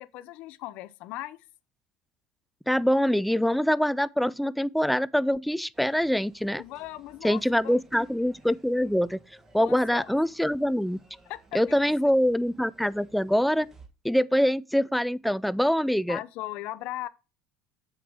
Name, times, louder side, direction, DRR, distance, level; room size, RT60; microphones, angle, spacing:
voice 1, 0.0-1.4 6.6-7.8 9.6-10.1 11.3-11.6 16.1-17.1, left 16 dB, 65° left, 0.6 m, -38 dB
voice 2, 2.7-6.6 7.2-9.2 9.5-11.0 11.5-13.7 14.0-16.2, equal, ahead, 0.3 m, -24 dB
sound 1, 5.7-13.9, right 3 dB, 15° right, 1.7 m, -58 dB
7.8 x 6.2 x 3.7 m
cardioid pair, 135°, 3 cm